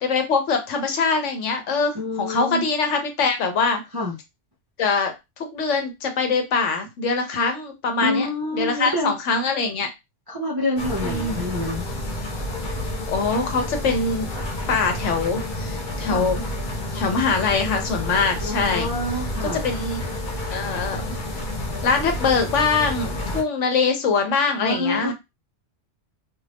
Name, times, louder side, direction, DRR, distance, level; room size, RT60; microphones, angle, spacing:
voice 1, 0.0-3.8 4.8-8.3 8.5-9.9 11.0-11.4 13.1-14.3 14.7-16.4 16.9-18.9 19.4-20.0 20.5-21.0 21.8-25.1, left 4 dB, 75° left, 5 dB, 1.1 m, -23 dB
voice 2, 1.9-2.6 3.9-4.2 8.0-9.1 10.3-11.9 16.1-16.3 18.4-19.7 24.6-25.1, left 1 dB, 30° right, -3 dB, 0.4 m, -27 dB
sound 1, 10.8-23.4, left 1 dB, 45° left, 0.8 m, -30 dB
2.5 x 2.4 x 3.3 m, 0.22 s
omnidirectional pair, 1.3 m